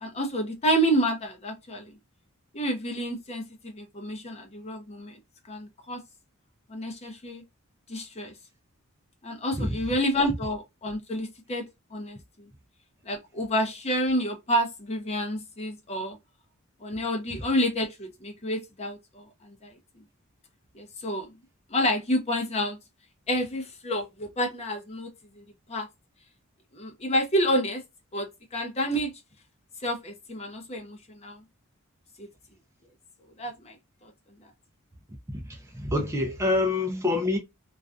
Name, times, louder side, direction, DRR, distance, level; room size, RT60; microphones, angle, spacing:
voice 1, 0.0-1.8 2.5-5.1 5.5-6.0 6.7-7.4 7.9-8.3 9.2-11.6 11.9-12.2 13.1-16.2 16.8-19.0 20.7-21.3 21.7-22.8 23.3-25.1 25.7-25.9 26.7-27.8 28.1-28.3 28.5-29.1 29.8-31.4 32.2-32.3 33.4-33.7 34.0-34.1, equal, 30° left, 0.6 m, -29 dB
voice 2, 35.5-37.4, left 2 dB, 15° right, 0.4 m, -26 dB
2.4 x 2.2 x 2.4 m
head